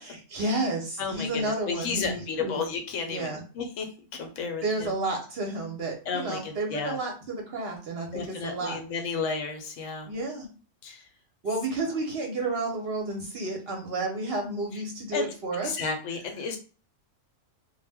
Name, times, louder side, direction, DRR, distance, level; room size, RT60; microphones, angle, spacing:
voice 1, 0.0-2.6 3.1-3.4 4.6-8.8 10.0-10.5 11.4-15.8, right 2 dB, 60° right, 1 dB, 0.7 m, -31 dB
voice 2, 1.0-4.9 6.1-7.0 8.1-10.1 10.8-11.1 14.7-14.8 15.1-15.3 15.6-16.6, left 5 dB, 70° left, 4 dB, 0.9 m, -33 dB
2.3 x 2.0 x 3.3 m, 0.36 s
omnidirectional pair, 1.4 m